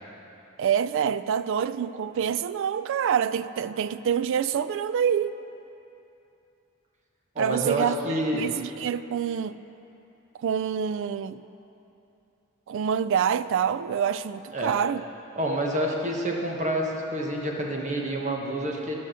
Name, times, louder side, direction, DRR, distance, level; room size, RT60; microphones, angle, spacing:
voice 1, 0.6-5.3 7.4-8.0 8.3-9.6 10.4-11.4 12.7-15.0, right 8 dB, 65° right, 0.3 m, -26 dB
voice 2, 7.3-8.5 14.5-14.8 15.4-19.0, right 1 dB, 35° right, 1.2 m, -28 dB
11.5 x 6.3 x 6.3 m
head